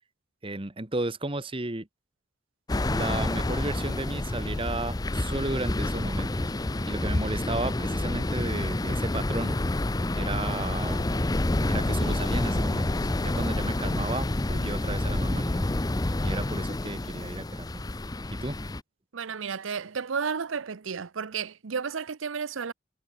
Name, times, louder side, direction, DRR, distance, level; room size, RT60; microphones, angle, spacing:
voice 1, 0.4-1.9 2.9-6.6 6.9-9.6 10.1-11.2 11.7-15.6 16.2-17.7 18.3-18.6, right 2 dB, 25° right, 1.2 m, -33 dB
sound 1, 2.7-18.8, left 1 dB, 20° left, 0.6 m, -28 dB
voice 2, 19.1-22.7, right 6 dB, 85° right, 0.7 m, -32 dB
head